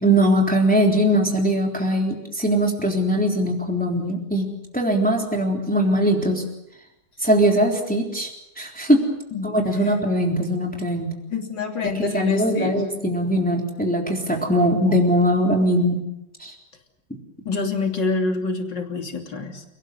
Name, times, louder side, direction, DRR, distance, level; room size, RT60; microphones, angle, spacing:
voice 1, 0.0-6.4 7.2-9.1 9.4-11.2 11.8-16.0 16.4-16.5, equal, 5° left, 1 dB, 3.6 m, -21 dB
voice 2, 11.3-12.8 17.5-19.6, left 4 dB, 85° left, 3 dB, 3.8 m, -26 dB
29.5 x 19.0 x 8.1 m, 0.86 s
omnidirectional pair, 1.9 m